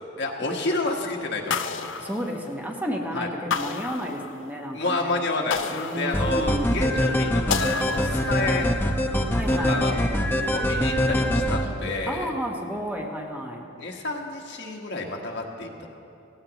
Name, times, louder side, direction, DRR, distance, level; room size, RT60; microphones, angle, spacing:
voice 1, 0.2-1.9 3.1-3.3 4.7-8.7 9.7-10.0 10.5-12.3 13.8-15.9, left 2 dB, 65° left, 0 dB, 1.5 m, -30 dB
sound 1, 1.5-2.9 3.5-4.7 5.5-6.7 7.5-8.7, left 6 dB, 85° left, 0.5 m, -31 dB
voice 2, 2.0-5.2 5.7-6.8 9.3-9.8 12.1-13.6, equal, 10° right, 0 dB, 1.1 m, -32 dB
sound 2, 6.1-11.7, equal, 10° left, 0.7 m, -24 dB
17.5 x 16.0 x 3.0 m, 2.8 s
head